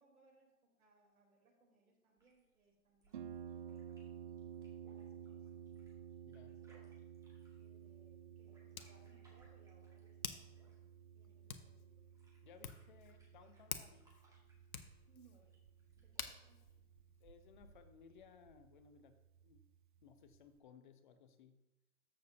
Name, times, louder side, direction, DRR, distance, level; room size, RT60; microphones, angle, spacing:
voice 1, 0.0-3.9 4.8-5.5 6.3-6.9 7.6-12.1 15.1-15.5 16.0-16.7, right 3 dB, 75° right, -1 dB, 3.6 m, -71 dB
sound 1, 2.2-18.2, right 3 dB, 10° right, 1.9 m, -72 dB
Harp, 3.1-20.6, right 9 dB, 40° right, 0.4 m, -54 dB
voice 2, 6.2-6.6 12.4-14.1 17.2-19.6 20.0-21.6, left 6 dB, 35° left, 10 dB, 0.6 m, -62 dB
Hands, 7.1-17.9, left 7 dB, 75° left, 1.0 m, -53 dB
13.5 x 6.9 x 2.7 m, 0.98 s
hypercardioid pair, 130°, 44 cm